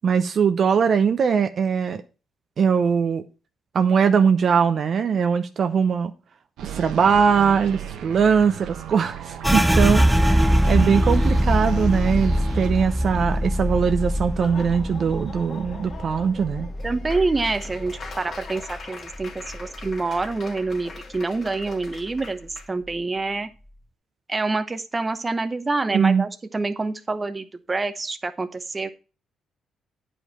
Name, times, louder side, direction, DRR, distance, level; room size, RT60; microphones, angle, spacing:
voice 1, 0.0-2.0 2.6-3.2 3.7-6.1 6.6-16.7 25.9-26.3, right 6 dB, 55° right, 0.7 m, -21 dB
sound 1, 6.6-12.7, right 9 dB, 85° right, 1.2 m, -36 dB
sound 2, 9.4-18.8 19.1-20.4 20.7-21.2 21.6-22.2, equal, 5° right, 0.5 m, -23 dB
Laughter / Applause, 14.3-22.7, left 4 dB, 50° left, 2.4 m, -41 dB
voice 2, 16.8-23.5 24.3-28.9, right 3 dB, 25° right, 0.9 m, -27 dB
9.1 x 5.2 x 5.6 m
cardioid pair, 90°, 0 cm